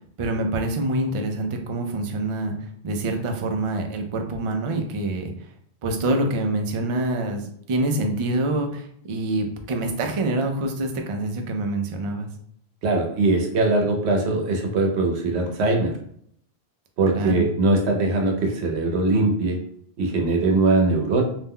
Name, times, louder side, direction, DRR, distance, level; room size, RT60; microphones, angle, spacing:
voice 1, 0.2-2.5 2.8-5.3 5.8-12.3 17.1-17.5, right 2 dB, 60° right, 4 dB, 0.3 m, -26 dB
voice 2, 12.8-15.9 17.0-19.6 20.0-21.2, right 2 dB, 85° right, 2 dB, 0.9 m, -21 dB
2.6 x 2.1 x 3.5 m, 0.65 s
omnidirectional pair, 1.1 m